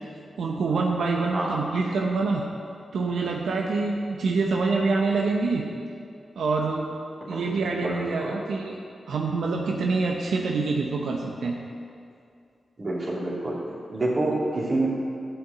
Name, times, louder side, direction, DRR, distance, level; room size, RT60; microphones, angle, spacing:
voice 1, 0.4-2.4 2.9-5.6 6.4-6.8 7.3-8.8 9.1-11.6, right 4 dB, 85° right, 0 dB, 0.9 m, -26 dB
voice 2, 7.3-8.3 12.8-13.5 13.9-14.9, right 2 dB, 50° right, -6 dB, 2.9 m, -27 dB
12.5 x 5.9 x 7.9 m, 2.4 s
cardioid pair, 60°, 0 cm